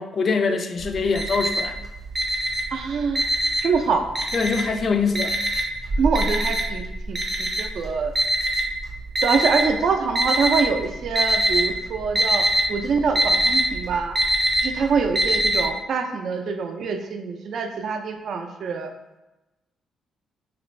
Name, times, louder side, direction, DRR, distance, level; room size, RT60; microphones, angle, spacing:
voice 1, 0.0-1.8 4.3-5.4, left 4 dB, 45° left, 7 dB, 0.3 m, -23 dB
Alarm, 0.8-1.8 2.1-3.8 4.2-4.8 5.2-9.6 10.2-10.8 11.0-11.7 11.9-15.6, right 1 dB, 30° right, 0.7 m, -22 dB
voice 2, 2.7-3.2 3.6-4.1 6.0-6.8 7.1-8.1 9.2-14.2 14.6-18.9, right 5 dB, 60° right, 5 dB, 0.4 m, -25 dB
3.2 x 2.4 x 3.1 m, 1.0 s
cardioid pair, 90°, 0 cm